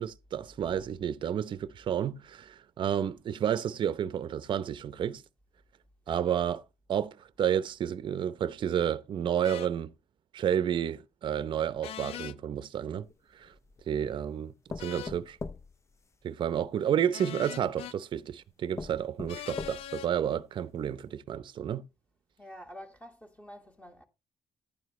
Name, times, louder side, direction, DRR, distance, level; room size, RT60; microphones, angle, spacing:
voice 1, 0.0-5.2 6.1-6.6 6.9-9.9 10.3-13.1 13.3-13.5 13.9-15.4 16.2-21.8, right 9 dB, 55° right, 0.7 m, -31 dB
sound 1, 9.4-9.7 11.8-12.4 14.8-15.2 17.1-18.0 19.3-20.1, left 11 dB, 80° left, 0.5 m, -41 dB
sound 2, 13.0-13.9 14.7-16.7 17.6-17.7 18.3-18.4 18.8-20.1 20.6-20.7 21.0-21.1, left 3 dB, 30° left, 0.6 m, -42 dB
voice 2, 22.4-24.0, equal, 15° left, 2.5 m, -48 dB
11.0 x 9.2 x 3.2 m
cardioid pair, 100°, 10 cm